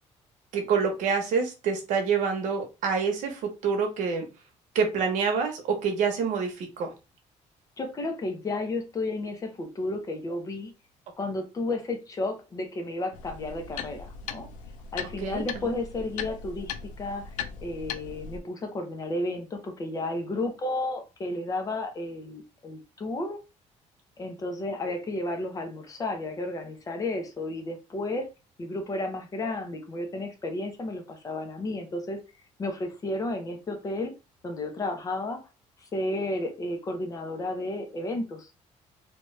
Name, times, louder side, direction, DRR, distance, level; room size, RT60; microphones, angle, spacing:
voice 1, 0.5-4.3 4.7-6.9 15.2-15.7, right 5 dB, 90° right, 4 dB, 0.9 m, -27 dB
voice 2, 7.8-10.7 11.2-14.5 14.9-17.3 17.6-23.4 24.2-28.3 28.6-32.2 32.6-34.1 34.4-35.4 35.9-38.5, left 2 dB, 30° left, 5 dB, 0.7 m, -32 dB
sound 1, 13.1-18.4, left 7 dB, 85° left, 0.4 m, -38 dB
2.8 x 2.3 x 3.1 m, 0.29 s
cardioid pair, 140°, 13 cm